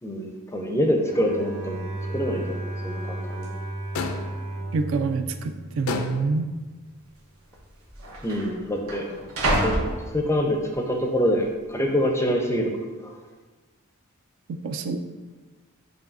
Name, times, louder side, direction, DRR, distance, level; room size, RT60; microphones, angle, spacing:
voice 1, 0.0-1.8 2.1-3.5 8.2-9.1 9.6-9.8 10.1-12.7 13.0-13.2, equal, 15° left, 2 dB, 0.4 m, -25 dB
Bowed string instrument, 1.0-6.3, right 1 dB, 25° right, 0.7 m, -34 dB
sound 1, 2.0-2.1 2.3-2.7 3.4-3.5 4.3-4.8 5.1-5.2 6.0-6.2 7.2-7.3 7.5-10.7 11.2-11.7, right 1 dB, 80° right, 0.9 m, -30 dB
sound 2, 3.9-4.5 5.9-6.5, left 5 dB, 75° left, 0.4 m, -30 dB
voice 2, 4.7-6.5 14.5-15.0, right 4 dB, 65° right, 7 dB, 0.3 m, -27 dB
7.1 x 2.6 x 2.5 m, 1.3 s
head